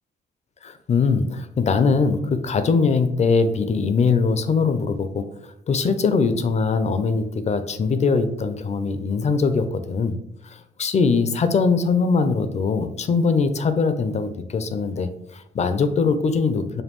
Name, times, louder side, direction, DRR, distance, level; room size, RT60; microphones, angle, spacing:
voice 1, 0.6-5.3 5.7-10.1 10.4-16.8, left 4 dB, 35° left, 10 dB, 0.4 m, -21 dB
5.2 x 2.2 x 3.0 m, 0.81 s
cardioid pair, 90°, 20 cm